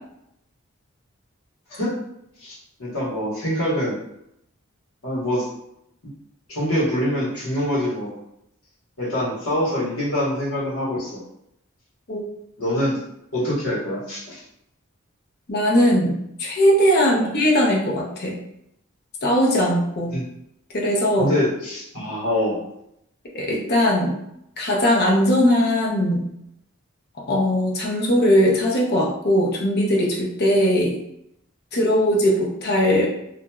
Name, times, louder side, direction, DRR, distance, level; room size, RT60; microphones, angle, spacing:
voice 1, 2.4-4.0 5.0-5.5 6.5-8.1 9.0-11.2 12.6-13.0 13.3-14.4 17.1-17.3 20.1-20.2 21.2-22.6, left 1 dB, 85° left, -6 dB, 1.2 m, -25 dB
voice 2, 15.5-18.4 19.2-20.1 20.7-21.3 23.3-24.1 24.6-26.3 27.3-31.0 31.7-33.1, equal, 50° left, -2 dB, 0.6 m, -19 dB
2.9 x 2.4 x 2.3 m, 0.79 s
head